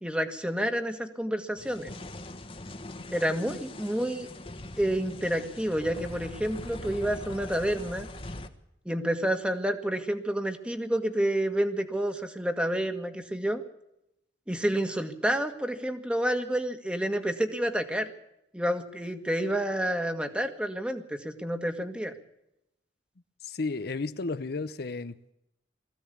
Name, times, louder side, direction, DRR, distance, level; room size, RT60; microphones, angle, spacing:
voice 1, 0.0-1.9 3.1-4.3 4.8-8.1 8.8-13.6 14.5-18.1 18.5-22.1, right 1 dB, 5° right, 1.7 m, -29 dB
sound 1, 1.6-8.5, left 2 dB, 30° left, 1.3 m, -42 dB
voice 2, 23.4-25.3, left 3 dB, 60° left, 0.7 m, -33 dB
20.5 x 15.0 x 8.5 m
head